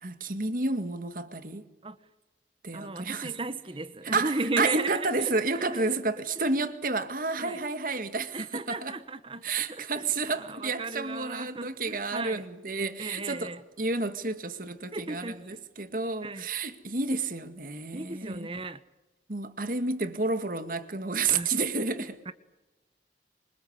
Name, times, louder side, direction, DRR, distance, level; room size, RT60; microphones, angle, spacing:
voice 1, 0.0-1.6 2.6-3.3 4.0-9.0 9.4-13.5 13.8-18.5 19.3-22.2, right 3 dB, 50° right, 2.0 m, -30 dB
voice 2, 2.7-5.8 6.4-6.5 7.4-7.6 8.3-12.4 13.0-13.6 14.9-15.6 16.2-16.5 17.9-18.8 21.3-21.5 22.3-22.4, right 2 dB, 30° right, 1.2 m, -35 dB
28.0 x 24.5 x 8.1 m
head